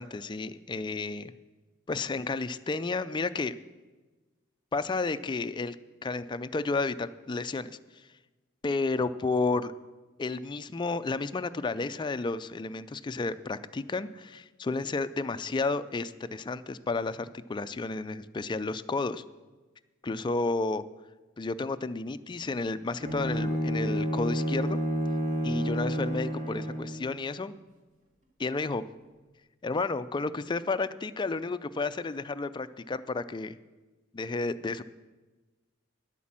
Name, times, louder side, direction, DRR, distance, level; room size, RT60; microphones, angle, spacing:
voice 1, 0.0-1.3 1.9-3.6 4.7-5.8 6.0-8.1 8.6-9.7 10.2-19.2 20.0-20.8 21.4-24.8 25.4-27.5 28.4-28.9 29.6-33.6 34.1-34.8, left 3 dB, 25° left, 12 dB, 0.4 m, -32 dB
Bowed string instrument, 23.0-27.1, equal, 40° right, 2.0 m, -30 dB
10.5 x 8.3 x 7.4 m, 1.2 s
head